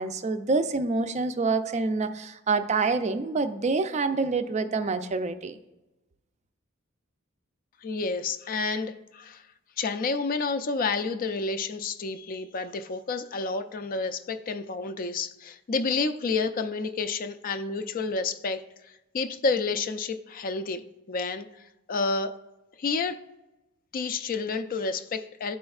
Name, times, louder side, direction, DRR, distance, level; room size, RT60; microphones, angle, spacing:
voice 1, 0.0-5.6, right 4 dB, 35° right, 10 dB, 0.4 m, -27 dB
voice 2, 7.8-9.5 9.8-21.5 21.9-22.3 22.8-23.2 23.9-25.6, left 4 dB, 45° left, 10 dB, 0.4 m, -30 dB
11.0 x 4.3 x 2.4 m, 0.97 s
head